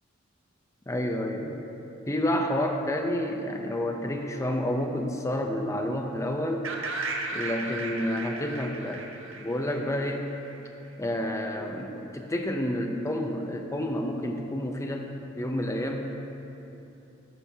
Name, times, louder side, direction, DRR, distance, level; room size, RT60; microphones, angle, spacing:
voice 1, 0.9-1.6 2.1-6.7 7.3-9.0 9.4-10.3 11.0-15.1 15.4-16.1, left 1 dB, 15° left, 3 dB, 0.5 m, -29 dB
sound 1, 6.6-10.5, right 3 dB, 70° right, 1.1 m, -35 dB
13.0 x 8.9 x 2.8 m, 2.9 s
head